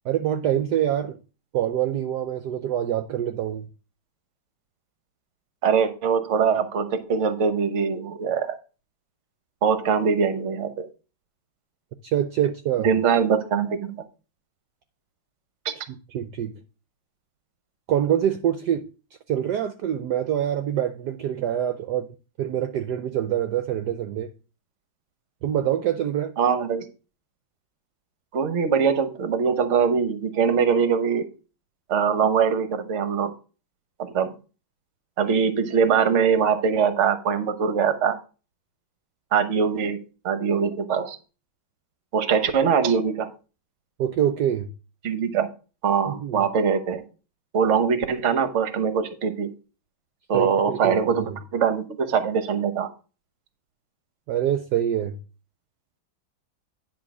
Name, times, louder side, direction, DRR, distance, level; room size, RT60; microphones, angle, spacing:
voice 1, 0.0-1.2 1.5-3.7 12.0-12.9 15.9-16.6 17.9-18.9 19.3-22.1 22.4-24.3 25.4-26.3 44.0-44.7 46.1-46.5 50.3-51.3 54.3-55.2, right 10 dB, 70° right, 1.1 m, -25 dB
voice 2, 5.6-8.5 9.6-10.9 12.8-14.0 15.6-15.7 26.4-26.9 28.3-31.2 31.9-33.3 34.0-34.3 35.2-38.2 39.3-41.2 42.1-43.3 45.0-45.5 45.8-47.0 47.5-49.5 50.3-52.9, right 6 dB, 45° right, 1.1 m, -22 dB
10.0 x 4.2 x 6.1 m
omnidirectional pair, 2.2 m